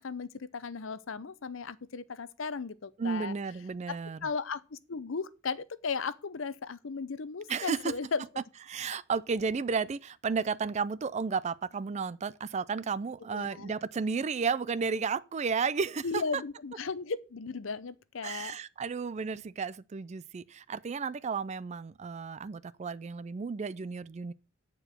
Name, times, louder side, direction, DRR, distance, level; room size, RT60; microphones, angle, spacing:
voice 1, 0.0-3.3 3.9-4.0 4.2-8.2 13.3-13.7 16.0-18.5, left 5 dB, 75° left, 0.7 m, -36 dB
voice 2, 3.0-4.3 7.5-7.9 8.7-16.4 18.2-24.3, right 5 dB, 35° right, 0.4 m, -33 dB
8.9 x 4.6 x 6.6 m
head